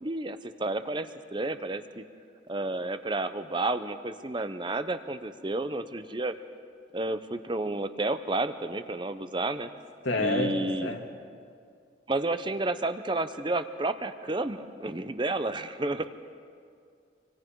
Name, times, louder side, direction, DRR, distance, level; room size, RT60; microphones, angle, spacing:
voice 1, 0.0-2.0 2.5-6.3 6.9-9.7 10.2-10.9 12.1-16.1, right 2 dB, 25° right, 11 dB, 0.6 m, -31 dB
voice 2, 10.0-10.6 10.8-11.0, left 2 dB, 90° left, 1 dB, 2.5 m, -28 dB
26.5 x 25.0 x 4.7 m, 2.3 s
head